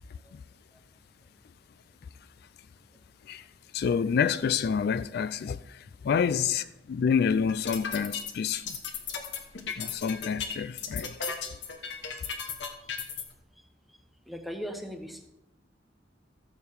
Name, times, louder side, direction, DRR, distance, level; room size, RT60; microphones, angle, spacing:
voice 1, 3.7-8.8 9.8-11.2, left 6 dB, 60° left, 0.3 m, -28 dB
sound 1, 7.5-13.2, left 6 dB, 75° left, 1.3 m, -35 dB
voice 2, 14.3-15.3, equal, ahead, 1.0 m, -38 dB
14.0 x 7.2 x 4.9 m
head